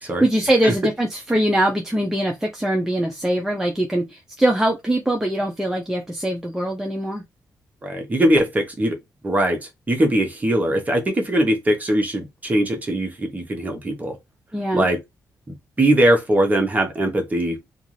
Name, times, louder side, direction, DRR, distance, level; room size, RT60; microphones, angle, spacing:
voice 1, 0.0-7.2 14.5-14.9, right 1 dB, 5° right, 0.5 m, -22 dB
voice 2, 7.8-9.0 9.2-14.2 14.7-15.0 15.5-17.6, right 1 dB, 25° right, 0.9 m, -21 dB
2.5 x 2.4 x 3.0 m
cardioid pair, 100°, 7 cm